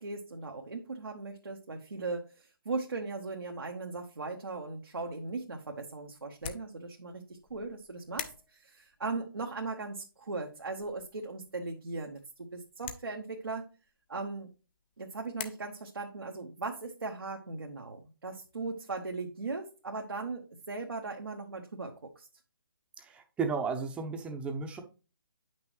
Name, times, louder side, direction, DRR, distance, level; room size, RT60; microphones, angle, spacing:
voice 1, 0.0-13.7 14.1-14.5 15.0-22.3, right 3 dB, 80° right, 2 dB, 1.1 m, -38 dB
sound 1, 5.0-15.5, left 9 dB, 25° left, 0.7 m, -48 dB
voice 2, 23.0-24.8, right 5 dB, 10° right, 6 dB, 0.8 m, -34 dB
8.7 x 6.0 x 3.1 m, 0.33 s
figure-of-eight pair, 145°, 12 cm